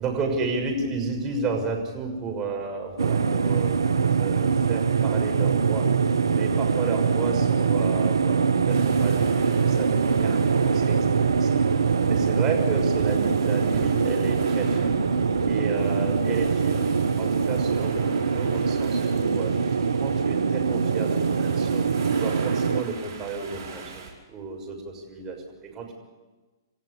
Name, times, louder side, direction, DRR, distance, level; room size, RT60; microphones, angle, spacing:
voice 1, 0.0-3.8 4.2-5.8 6.3-11.5 12.1-15.0 15.4-16.9 17.2-19.5 20.0-21.8 22.1-25.9, right 4 dB, 20° right, 1 dB, 6.3 m, -32 dB
sound 1, 3.0-22.8, right 5 dB, 80° right, 0.9 m, -23 dB
sound 2, 8.7-24.1, right 5 dB, 55° right, 5.5 m, -42 dB
28.5 x 14.5 x 8.4 m, 1.2 s
figure-of-eight pair, 120°, 2 cm